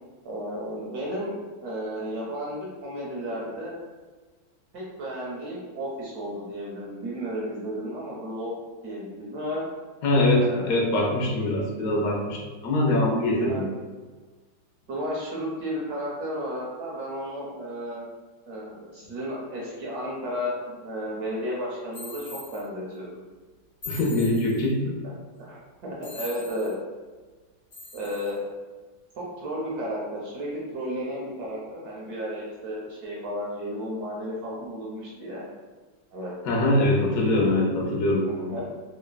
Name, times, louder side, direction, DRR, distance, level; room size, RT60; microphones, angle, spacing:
voice 1, 0.2-3.8 4.7-8.5 8.8-9.6 10.3-10.8 13.4-13.6 14.9-18.1 18.5-23.2 25.4-26.7 27.9-28.4 29.2-35.4 36.1-36.3 38.4-38.6, equal, 70° right, -4 dB, 0.9 m, -33 dB
voice 2, 10.0-13.7 23.9-25.0 36.5-38.6, left 1 dB, 70° left, -2 dB, 0.8 m, -23 dB
sound 1, 21.9-22.6 23.8-24.7 26.0-26.7 27.7-28.3, left 3 dB, 55° left, 1.2 m, -41 dB
3.2 x 2.1 x 2.2 m, 1.3 s
omnidirectional pair, 2.1 m